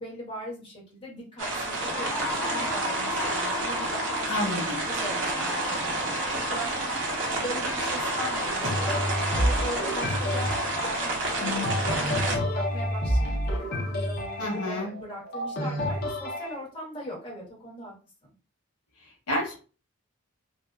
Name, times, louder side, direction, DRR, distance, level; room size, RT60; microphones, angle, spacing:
voice 1, 0.0-17.9, equal, 25° left, -7 dB, 1.3 m, -40 dB
sound 1, 1.4-12.3, left 2 dB, 70° left, 1.3 m, -36 dB
sound 2, 1.4-12.4, right 2 dB, 55° right, 0.6 m, -30 dB
voice 2, 4.3-4.8 14.4-14.9 19.3-19.6, left 1 dB, 85° left, -2 dB, 1.1 m, -29 dB
sound 3, 8.6-16.6, equal, 45° left, 0.6 m, -29 dB
2.7 x 2.1 x 2.3 m, 0.35 s
head